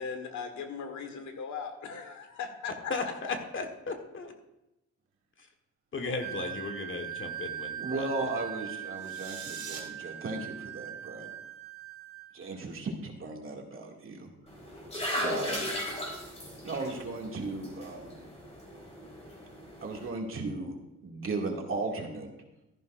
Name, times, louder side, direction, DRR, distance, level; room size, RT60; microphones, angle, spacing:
voice 1, 0.0-2.9 3.2-3.3, left 6 dB, 70° left, 6 dB, 1.7 m, -38 dB
voice 2, 2.9-4.3 5.9-8.3, left 3 dB, 40° left, 4 dB, 1.6 m, -36 dB
Wind instrument woodwind instrument, 6.2-12.3, right 11 dB, 90° right, 1.9 m, -41 dB
voice 3, 7.8-11.3 12.3-14.3 15.2-15.7 16.6-18.1 19.8-20.8 21.0-22.3, right 3 dB, 45° right, 0 dB, 2.4 m, -36 dB
sound 1, 8.9-9.8, right 6 dB, 65° right, 3.2 m, -43 dB
sound 2, 14.5-20.1, left 1 dB, 20° left, 4.0 m, -38 dB
13.5 x 11.0 x 2.6 m, 0.94 s
cardioid pair, 90°, 30 cm